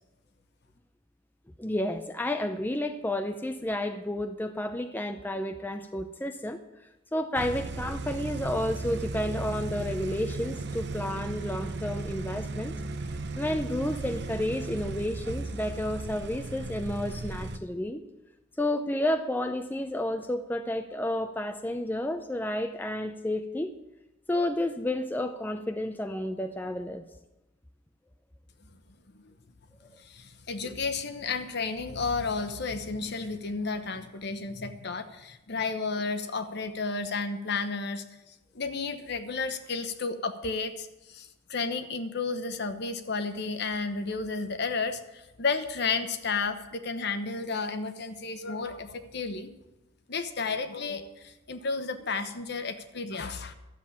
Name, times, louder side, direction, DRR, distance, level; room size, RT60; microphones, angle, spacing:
voice 1, 1.6-6.6 7.1-12.7 13.4-18.0 18.6-23.7 24.3-27.0, left 1 dB, 10° left, 7 dB, 0.5 m, -31 dB
sound 1, 7.3-17.6, right 3 dB, 55° right, 0.7 m, -36 dB
voice 2, 30.0-49.5 50.1-53.5, left 4 dB, 55° left, 9 dB, 1.0 m, -32 dB
12.5 x 7.4 x 8.5 m, 0.98 s
head